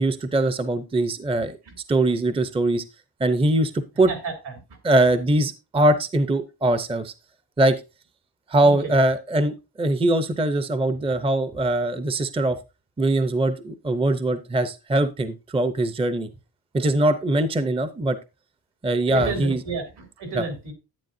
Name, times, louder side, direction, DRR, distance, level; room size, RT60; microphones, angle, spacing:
voice 1, 0.0-1.6 1.9-2.8 3.2-4.1 4.8-7.1 7.6-7.8 8.5-12.6 13.0-16.3 16.7-18.2 18.8-19.6 20.3-20.4, right 1 dB, 15° right, 12 dB, 0.6 m, -22 dB
voice 2, 4.1-4.8 8.6-8.9 19.1-20.7, right 3 dB, 75° right, 5 dB, 3.3 m, -31 dB
10.5 x 9.2 x 2.6 m, 0.27 s
wide cardioid pair, 150°, 40 cm